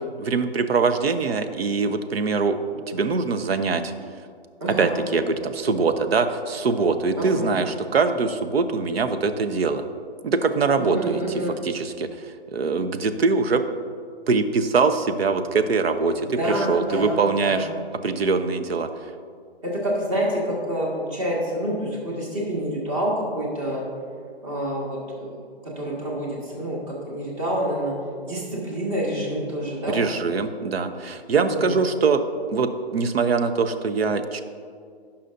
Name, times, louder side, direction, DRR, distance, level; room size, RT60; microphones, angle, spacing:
voice 1, 0.2-2.6 2.9-3.9 4.8-9.8 10.2-12.1 12.5-13.6 14.3-17.7 18.0-18.9 29.9-32.2 32.5-34.4, right 4 dB, 70° right, 9 dB, 0.7 m, -23 dB
voice 2, 4.6-5.0 7.2-7.5 10.8-11.6 16.2-17.7 19.6-23.9 24.4-28.0 28.2-30.0 31.4-31.8, right 1 dB, 30° right, -3 dB, 1.8 m, -28 dB
16.5 x 5.7 x 2.6 m, 2.2 s
hypercardioid pair, 160°, 32 cm